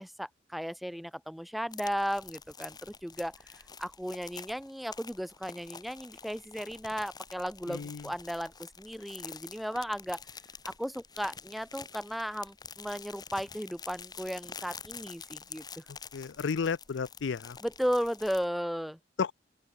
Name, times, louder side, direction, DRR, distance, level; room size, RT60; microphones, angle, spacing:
voice 1, 0.0-10.2 10.6-15.8 17.6-19.0, equal, ahead, 0.6 m, -35 dB
sound 1, 1.7-18.5, left 6 dB, 20° left, 1.1 m, -48 dB
voice 2, 7.7-8.1 16.1-17.6 19.2-19.3, left 5 dB, 70° left, 0.5 m, -32 dB
open air
head